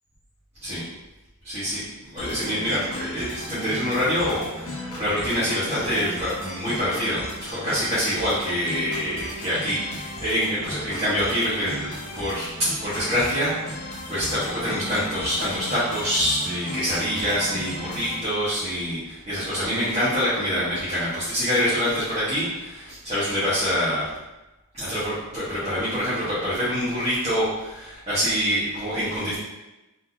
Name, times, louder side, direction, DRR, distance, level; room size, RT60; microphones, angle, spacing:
voice 1, 1.4-24.1 24.7-29.3, equal, 30° right, -13 dB, 1.4 m, -26 dB
sound 1, 2.2-18.2, left 1 dB, 80° left, 1.1 m, -36 dB
4.0 x 3.9 x 2.8 m, 1.0 s
head